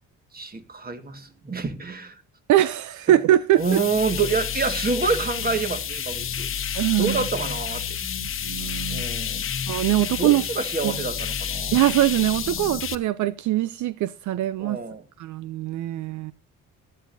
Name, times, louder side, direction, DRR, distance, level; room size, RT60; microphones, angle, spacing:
voice 1, 0.3-2.2 3.1-3.2 3.6-6.5 7.0-8.0 8.9-9.4 10.1-11.8 14.6-15.0, right 4 dB, 30° right, 1.7 m, -27 dB
voice 2, 2.5-3.8 6.7-7.2 8.2-9.0 9.7-10.4 10.8-11.0 11.7-14.8 15.2-16.3, right 14 dB, 75° right, 0.5 m, -22 dB
sound 1, 3.6-13.0, left 8 dB, 45° left, 1.0 m, -30 dB
18.5 x 12.0 x 2.6 m
cardioid pair, 90°, 30 cm